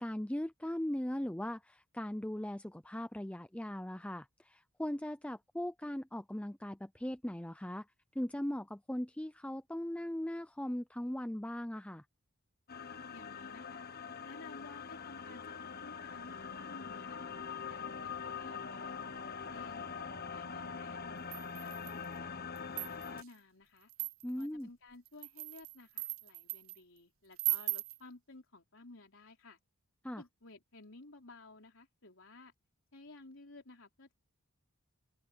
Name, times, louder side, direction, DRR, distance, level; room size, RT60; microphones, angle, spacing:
voice 1, 0.0-7.9 8.1-12.0 24.2-24.7 30.0-30.2, left 1 dB, 5° left, 0.5 m, -39 dB
sound 1, 12.7-23.2, left 6 dB, 45° left, 1.2 m, -43 dB
voice 2, 13.1-13.9 14.2-19.1 19.5-19.9 20.3-21.2 21.6-23.9 24.4-29.6 30.2-32.5 32.9-34.1, left 2 dB, 60° left, 4.3 m, -55 dB
sound 2, 21.3-22.1 22.6-23.3 23.9-24.5 25.1-26.8 27.4-28.0, right 19 dB, 65° right, 0.7 m, -38 dB
open air
head